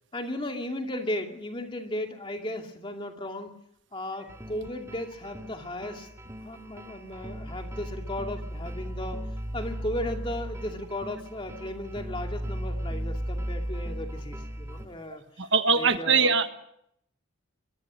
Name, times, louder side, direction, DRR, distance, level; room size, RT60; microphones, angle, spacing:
voice 1, 0.1-3.5 3.9-9.2 9.5-16.3, left 1 dB, 25° left, 4 dB, 2.4 m, -35 dB
sound 1, 4.3-14.9, equal, 15° right, 2.0 m, -36 dB
voice 2, 15.4-16.5, right 5 dB, 60° right, 9 dB, 1.4 m, -22 dB
23.0 x 22.5 x 6.3 m, 0.74 s
head